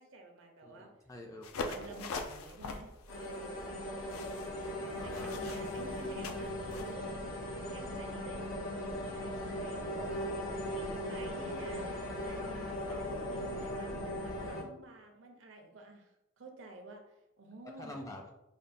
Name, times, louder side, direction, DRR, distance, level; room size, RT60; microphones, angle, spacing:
voice 1, 0.0-0.9 1.6-3.8 5.0-7.2 7.7-10.2 10.7-18.0, right 2 dB, 65° right, 3 dB, 0.6 m, -51 dB
voice 2, 0.6-2.1 5.0-5.3 9.9-10.3 12.8-13.0 17.8-18.3, left 1 dB, 15° left, 1 dB, 0.3 m, -48 dB
sound 1, 1.4-6.9, left 3 dB, 85° left, 0.4 m, -43 dB
sound 2, 3.1-14.6, left 1 dB, 65° left, 0.8 m, -38 dB
5.1 x 2.2 x 2.5 m, 0.91 s
head